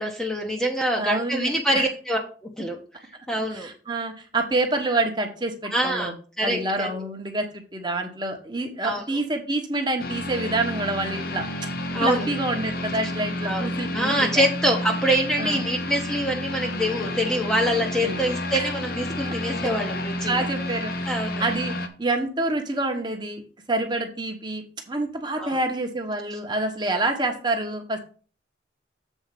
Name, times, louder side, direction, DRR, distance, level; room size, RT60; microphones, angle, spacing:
voice 1, 0.0-3.7 5.7-6.1 6.4-7.0 8.8-9.0 11.9-12.2 13.4-20.5 21.1-21.4 25.3-25.6 26.3-26.4, equal, 5° left, 0 dB, 0.9 m, -25 dB
voice 2, 1.0-1.9 3.3-6.1 6.4-11.4 12.0-14.5 15.4-15.6 18.0-18.3 18.5-18.7 19.2-19.3 20.2-23.4 23.7-28.0, right 2 dB, 25° right, 4 dB, 1.1 m, -27 dB
sound 1, 10.0-21.9, left 1 dB, 55° left, 0.8 m, -30 dB
7.3 x 4.3 x 5.8 m, 0.39 s
head